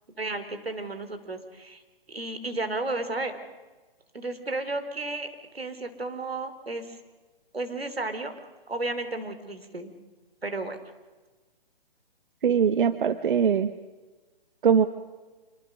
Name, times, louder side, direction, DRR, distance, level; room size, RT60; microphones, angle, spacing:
voice 1, 0.2-1.8 2.1-3.4 4.1-7.0 7.5-8.3 8.7-9.9 10.4-10.8, right 2 dB, 90° right, 8 dB, 3.4 m, -33 dB
voice 2, 12.4-13.7 14.6-14.8, right 7 dB, 60° right, 12 dB, 1.1 m, -21 dB
26.0 x 24.5 x 6.5 m, 1.2 s
figure-of-eight pair, 140°, 29 cm